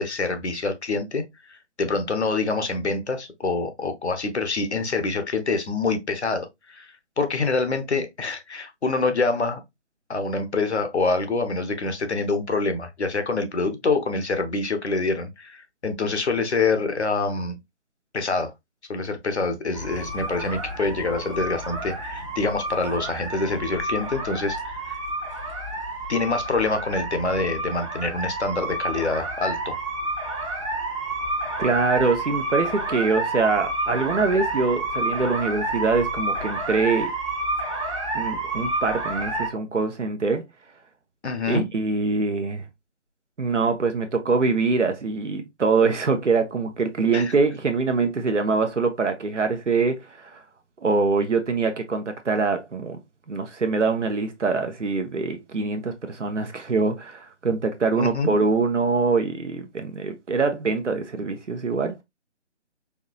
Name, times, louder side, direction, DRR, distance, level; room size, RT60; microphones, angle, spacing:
voice 1, 0.0-9.6 10.1-17.6 18.1-18.5 18.9-25.0 26.1-29.7 41.2-41.6 47.1-47.3 58.0-58.3, left 3 dB, 65° left, 1.0 m, -26 dB
sound 1, 19.7-39.5, right 2 dB, 25° right, 0.9 m, -30 dB
voice 2, 31.6-37.1 38.1-40.4 41.5-42.6 43.4-50.4 50.8-53.0 53.3-62.0, right 4 dB, 80° right, 0.9 m, -24 dB
4.7 x 2.7 x 2.2 m
figure-of-eight pair, 150°, 36 cm